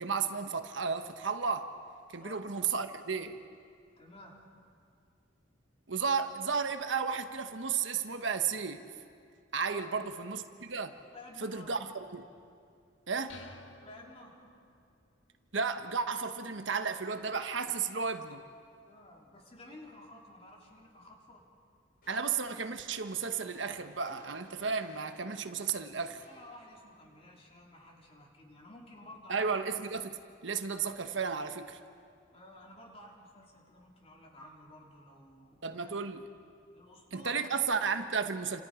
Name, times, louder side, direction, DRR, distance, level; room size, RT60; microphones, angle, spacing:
voice 1, 0.0-1.8 2.1-3.4 5.9-8.8 9.5-11.0 11.4-12.2 13.1-13.4 15.5-18.4 22.1-26.2 29.3-31.8 35.6-36.2 37.1-38.6, right 5 dB, 75° right, 8 dB, 1.2 m, -33 dB
voice 2, 4.0-4.4 9.7-10.1 11.1-11.8 13.8-14.5 18.9-21.4 26.3-29.6 32.3-36.0 36.7-37.4, left 1 dB, 30° left, -1 dB, 3.7 m, -52 dB
sound 1, 13.3-14.9, left 2 dB, 85° left, 1.8 m, -52 dB
sound 2, 22.0-27.3, left 1 dB, 50° left, 6.0 m, -61 dB
29.5 x 27.5 x 5.1 m, 2.3 s
head